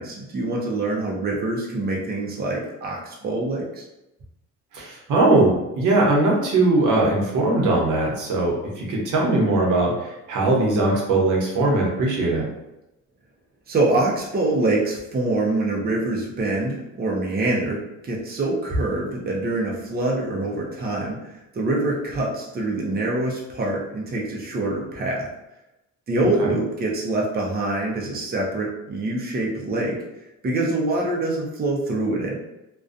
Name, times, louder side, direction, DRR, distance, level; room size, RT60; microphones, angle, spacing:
voice 1, 0.0-3.8 13.7-21.2 21.5-25.2 26.1-30.0 30.4-32.4, right 2 dB, 30° right, -2 dB, 0.6 m, -25 dB
voice 2, 4.7-12.5 26.4-26.5, right 2 dB, 80° right, -3 dB, 0.8 m, -20 dB
2.5 x 2.2 x 2.5 m, 0.93 s
cardioid pair, 90°, 30 cm